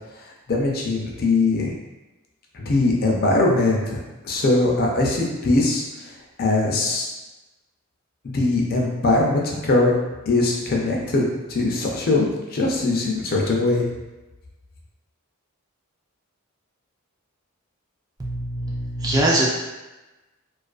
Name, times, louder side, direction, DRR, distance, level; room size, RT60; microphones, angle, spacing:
voice 1, 0.5-1.7 2.5-4.0 4.2-5.8 6.4-7.1 8.3-9.9 10.3-11.2 11.5-13.8, left 2 dB, 45° left, -1 dB, 0.4 m, -21 dB
voice 2, 18.2-19.6, right 1 dB, 20° right, -3 dB, 0.3 m, -22 dB
2.4 x 2.4 x 2.3 m, 1.1 s
head